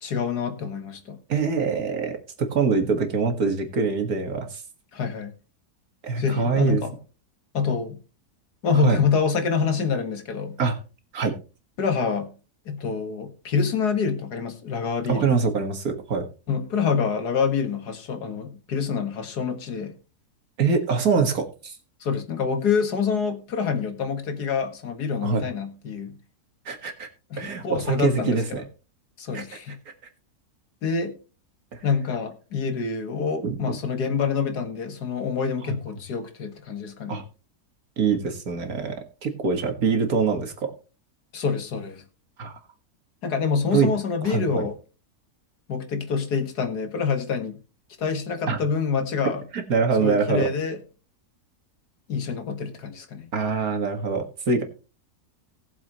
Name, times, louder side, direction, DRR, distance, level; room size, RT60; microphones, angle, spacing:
voice 1, 0.0-1.2 4.9-5.3 6.2-6.9 7.5-8.0 8.6-10.6 11.8-12.3 12.7-15.3 16.5-19.9 22.0-26.1 27.3-28.6 29.2-29.8 30.8-31.2 31.8-37.2 41.3-42.0 43.2-44.8 45.7-47.6 48.0-49.4 50.0-50.8 52.1-53.3, left 5 dB, 85° left, 2.2 m, -26 dB
voice 2, 1.3-4.6 6.0-6.8 8.7-9.0 10.6-10.8 11.1-11.3 15.1-16.3 20.6-21.8 25.2-25.4 26.7-27.1 27.4-28.6 29.3-29.4 31.7-31.8 33.4-33.8 37.1-37.2 38.0-40.7 42.4-42.5 43.7-43.9 44.2-44.7 48.5-48.6 49.5-50.5 53.3-54.6, right 5 dB, 65° right, 2.2 m, -24 dB
19.0 x 7.4 x 3.0 m
omnidirectional pair, 1.7 m